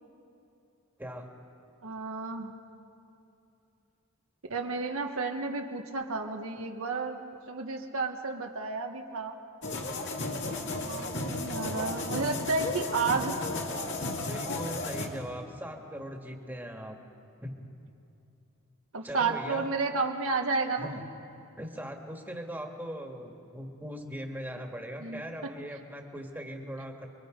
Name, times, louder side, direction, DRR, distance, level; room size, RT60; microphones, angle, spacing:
voice 1, 1.8-2.5 4.5-7.2 7.5-9.4 10.6-13.4 18.9-21.0 25.0-25.2, right 4 dB, 85° right, 2 dB, 1.3 m, -31 dB
sound 1, 9.6-15.1, left 2 dB, 60° left, 2.3 m, -34 dB
voice 2, 14.2-17.0 17.4-17.6 19.0-19.7 20.8-20.9 21.6-27.1, equal, 10° right, 3 dB, 1.8 m, -40 dB
30.0 x 23.0 x 5.2 m, 2.8 s
head